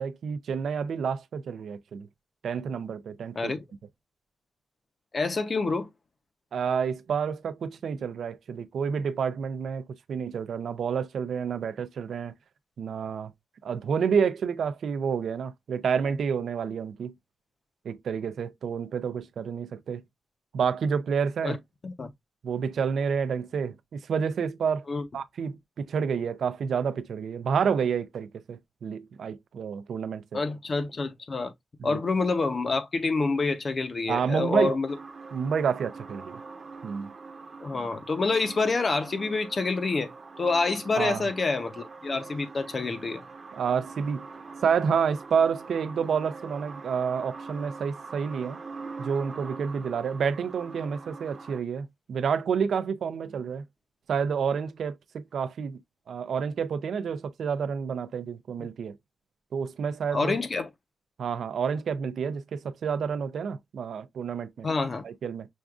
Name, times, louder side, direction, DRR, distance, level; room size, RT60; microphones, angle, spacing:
voice 1, 0.0-2.1 2.4-3.6 6.5-9.8 10.1-12.3 12.8-13.3 13.6-17.1 17.8-20.0 20.5-21.6 22.4-24.8 25.1-30.4 31.8-32.0 34.1-34.8 35.3-36.4 36.8-37.1 41.0-41.3 43.5-44.3 44.6-48.6 49.0-53.6 54.1-55.8 56.1-59.0 59.5-60.4 61.2-64.7 65.0-65.5, right 6 dB, 85° right, 0.4 m, -29 dB
voice 2, 5.1-5.9 21.4-21.6 21.8-22.1 24.9-25.0 30.3-31.5 31.8-34.9 37.6-40.1 40.4-43.2 60.1-60.7 64.6-65.0, left 3 dB, 40° left, 0.7 m, -27 dB
sound 1, 34.9-51.6, right 4 dB, 45° right, 0.8 m, -43 dB
6.1 x 2.4 x 2.4 m
wide cardioid pair, 130°, 0 cm